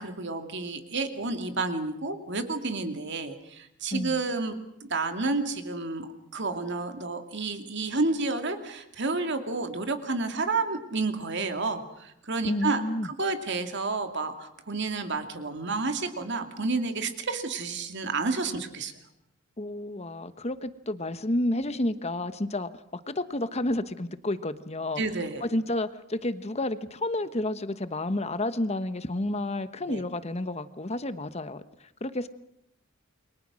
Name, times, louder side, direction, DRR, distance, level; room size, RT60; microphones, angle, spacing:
voice 1, 0.0-4.5 4.8-18.9 25.0-25.4 29.9-30.0, right 3 dB, 55° right, 6 dB, 2.5 m, -30 dB
voice 2, 3.9-4.2 12.4-13.1 18.5-18.6 19.6-22.7 23.1-25.0 25.4-31.6 32.0-32.3, left 1 dB, 30° left, 12 dB, 1.1 m, -30 dB
29.0 x 23.5 x 6.3 m, 0.78 s
head